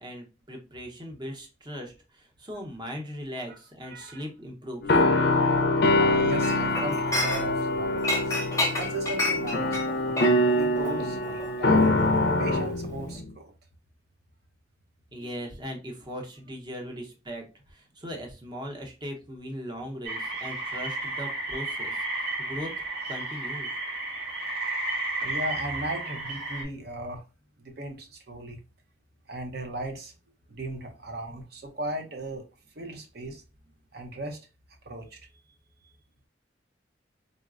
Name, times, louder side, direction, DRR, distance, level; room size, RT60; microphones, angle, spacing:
voice 1, 0.0-5.0 15.1-22.7 23.1-23.7, equal, 25° right, 0.7 m, -39 dB
voice 2, 3.9-4.2 6.0-8.3 8.8-10.2 10.4-11.9 12.4-13.5 15.2-15.3 25.2-27.2 27.6-28.6 29.3-30.1 30.5-32.5 32.8-33.4 33.9-34.4 34.8-35.2, right 1 dB, 60° right, 0.7 m, -37 dB
sound 1, 4.8-13.3, left 1 dB, 60° left, 0.4 m, -24 dB
Chink clink, 6.4-7.7 8.0-12.6 12.9-13.2, left 2 dB, 15° left, 0.7 m, -30 dB
sound 2, 20.0-26.6, right 2 dB, 90° right, 1.4 m, -32 dB
3.9 x 2.1 x 2.4 m
head